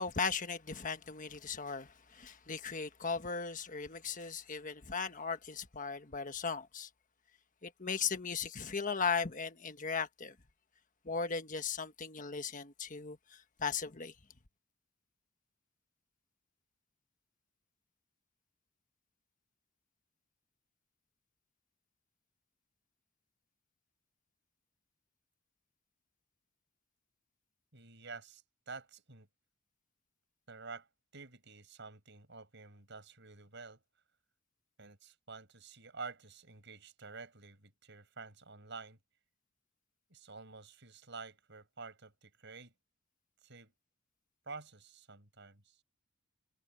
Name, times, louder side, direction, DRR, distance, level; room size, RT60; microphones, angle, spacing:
voice 1, 0.0-6.9 7.6-10.3 11.0-14.1, left 5 dB, 40° left, 1.3 m, -37 dB
voice 2, 27.7-29.3 30.5-33.8 34.8-39.0 40.1-42.8 43.4-43.7 44.4-45.8, right 4 dB, 60° right, 7.8 m, -49 dB
head